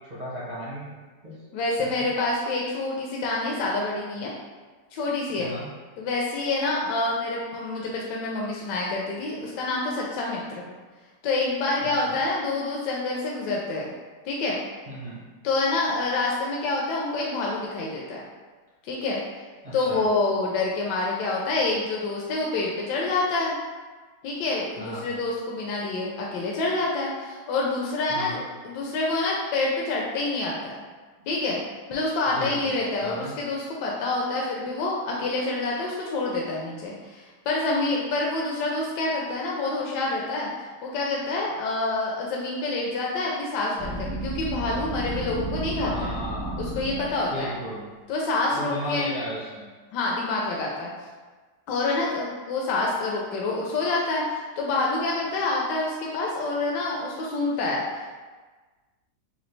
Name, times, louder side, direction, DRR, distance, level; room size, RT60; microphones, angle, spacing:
voice 1, 0.1-0.8 1.2-1.4 1.8-2.1 5.4-5.7 11.8-11.9 14.9-15.2 19.6-20.0 24.8-25.1 28.1-28.4 31.2-31.3 32.3-32.5 33.0-33.3 45.8-46.7 47.3-47.8 48.5-49.7, equal, 40° right, -9 dB, 0.6 m, -35 dB
voice 2, 1.5-4.3 4.9-5.5 6.0-10.7 11.2-13.9 14.2-14.6 15.4-18.2 18.8-19.2 19.7-23.5 24.2-30.8 31.3-31.6 31.9-46.1 46.6-47.5 48.1-49.1 49.9-50.9 51.7-58.1, left 2 dB, 80° left, -3 dB, 1.2 m, -27 dB
sound 1, 43.8-47.5, right 1 dB, 70° right, 1.2 m, -33 dB
4.1 x 2.6 x 3.1 m, 1.3 s
omnidirectional pair, 1.8 m